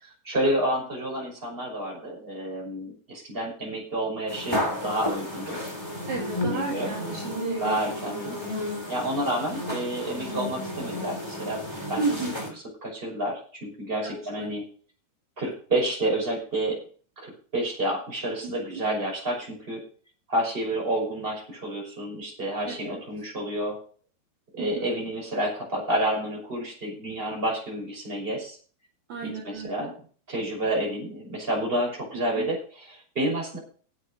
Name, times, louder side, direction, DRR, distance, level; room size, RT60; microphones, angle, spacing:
voice 1, 0.0-5.6 6.4-6.9 7.6-8.4 8.9-11.6 11.9-12.1 12.8-14.6 15.4-16.8 17.2-19.8 20.3-23.8 24.5-28.6 29.2-29.9 30.3-33.6, right 1 dB, 15° right, -2 dB, 5.8 m, -29 dB
sound 1, 4.3-12.5, left 1 dB, 5° left, 3.0 m, -33 dB
voice 2, 6.0-7.8 12.0-12.5 14.0-14.5 18.4-18.8 22.7-23.0 24.6-24.7 29.1-29.9 32.1-32.4, right 4 dB, 55° right, -3 dB, 3.7 m, -33 dB
11.5 x 8.0 x 6.3 m, 0.42 s
omnidirectional pair, 4.1 m